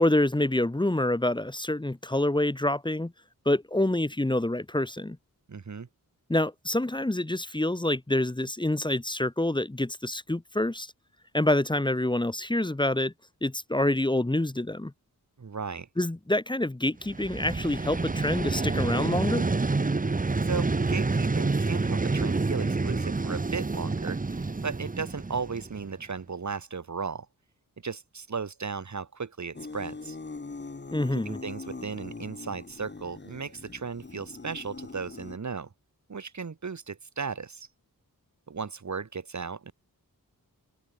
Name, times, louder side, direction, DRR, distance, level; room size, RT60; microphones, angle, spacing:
voice 1, 0.0-3.1 3.5-5.2 6.3-10.9 11.3-13.1 13.4-14.9 16.0-19.4 30.9-31.4, left 1 dB, 15° left, 2.4 m, -27 dB
voice 2, 5.5-5.9 15.4-15.9 20.4-27.3 27.8-30.2 31.1-35.7 36.1-37.7 38.5-39.7, right 5 dB, 55° right, 4.0 m, -36 dB
Vehicle, 17.0-26.0, right 3 dB, 25° right, 1.4 m, -28 dB
sound 1, 29.5-35.4, left 3 dB, 30° left, 2.9 m, -42 dB
wide cardioid pair, 150°, 35 cm